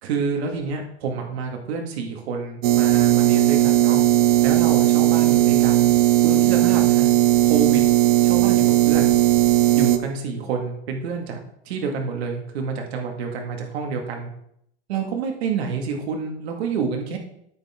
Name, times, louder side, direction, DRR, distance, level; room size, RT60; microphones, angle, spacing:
voice 1, 0.0-4.0 4.4-5.9 6.2-7.1 7.4-7.8 8.2-9.2 9.8-14.3 14.9-17.2, right 5 dB, 60° right, 2 dB, 2.2 m, -28 dB
sound 1, 2.6-10.0, right 15 dB, 30° right, 0.5 m, -17 dB
9.3 x 8.1 x 3.7 m, 0.73 s
supercardioid pair, 160°, 35 cm